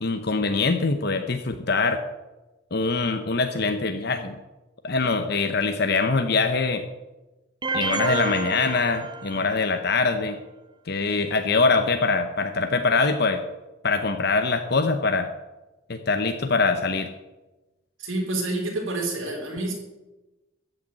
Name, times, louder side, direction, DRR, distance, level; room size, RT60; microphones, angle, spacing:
voice 1, 0.0-2.0 2.7-4.4 4.8-6.8 7.7-10.4 10.9-13.4 13.8-15.3 15.9-17.1, left 4 dB, 55° left, 7 dB, 0.8 m, -23 dB
sound 1, 7.6-9.7, right 4 dB, 20° right, 0.8 m, -29 dB
voice 2, 18.0-19.7, right 2 dB, 85° right, -1 dB, 3.7 m, -28 dB
14.0 x 6.6 x 8.8 m, 1.1 s
head